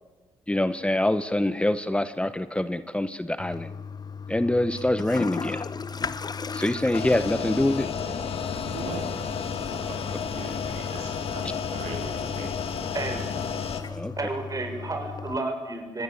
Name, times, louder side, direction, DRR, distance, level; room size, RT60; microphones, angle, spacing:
voice 1, 0.5-3.7 4.3-5.6 6.5-7.9 13.9-14.1, left 1 dB, 10° left, 13 dB, 1.1 m, -25 dB
Toilet flush, 3.4-15.4, left 5 dB, 40° left, 1.1 m, -37 dB
sound 1, 6.9-13.8, left 6 dB, 65° left, 2.5 m, -32 dB
voice 2, 8.6-9.0 9.6-10.0 10.3-12.5, right 5 dB, 80° right, 3 dB, 3.6 m, -40 dB
voice 3, 14.2-16.0, right 2 dB, 35° right, 5 dB, 6.9 m, -31 dB
24.5 x 18.0 x 8.5 m, 1.3 s
supercardioid pair, 55°, 11 cm